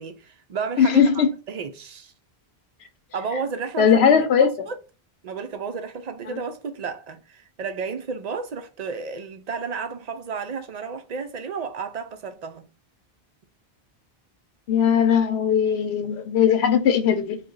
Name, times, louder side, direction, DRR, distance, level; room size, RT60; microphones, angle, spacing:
voice 1, 0.0-2.1 3.1-4.0 4.4-4.7 5.2-12.7, right 5 dB, 50° right, 0.5 m, -32 dB
voice 2, 0.8-1.3 3.8-4.5 14.7-17.4, left 7 dB, 90° left, 0.9 m, -19 dB
4.0 x 2.2 x 3.7 m
omnidirectional pair, 1.0 m